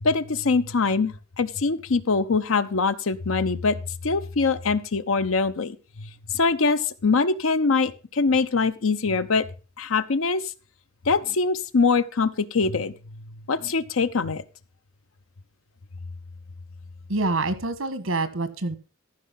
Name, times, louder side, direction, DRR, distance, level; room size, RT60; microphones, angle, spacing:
voice 1, 0.0-3.8 4.0-6.1 6.3-9.5 9.8-10.4 11.1-12.9 13.5-14.4, left 4 dB, 85° left, 13 dB, 0.7 m, -23 dB
voice 2, 17.1-18.7, right 2 dB, 85° right, 12 dB, 1.4 m, -26 dB
14.0 x 5.5 x 5.7 m, 0.35 s
head